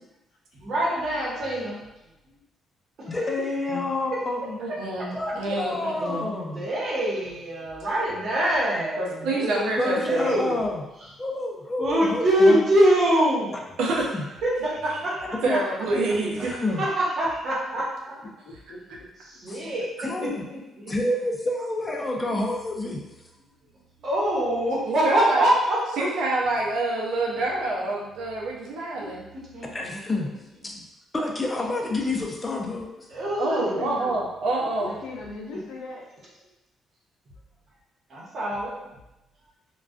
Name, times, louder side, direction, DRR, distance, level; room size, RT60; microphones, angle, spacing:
voice 1, 0.6-1.8 3.0-3.3 6.2-10.6 11.8-13.5 14.4-15.2 16.4-17.8 19.2-20.9 24.0-25.8 29.0-29.1 29.5-30.3 30.7-30.8 33.1-33.9 38.1-38.7, right 1 dB, 60° right, -6 dB, 0.9 m, -24 dB
voice 2, 3.1-4.6 5.1-6.7 9.8-10.8 11.2-12.6 13.8-14.2 15.5-15.6 16.4-16.8 19.5-19.7 20.0-20.4 20.9-23.0 29.7-30.3 30.6-30.7 31.1-32.9, left 2 dB, 25° left, 0 dB, 0.5 m, -28 dB
voice 3, 4.6-6.3 9.0-10.4 13.8-14.1 15.4-16.5 24.8-25.5 25.9-29.3 33.4-34.9, right 2 dB, 85° right, -2 dB, 0.5 m, -27 dB
voice 4, 18.4-18.8 33.6-34.2 34.6-36.1, left 2 dB, 90° left, -2 dB, 0.5 m, -37 dB
2.4 x 2.2 x 2.3 m, 0.94 s
cardioid pair, 90°, 0 cm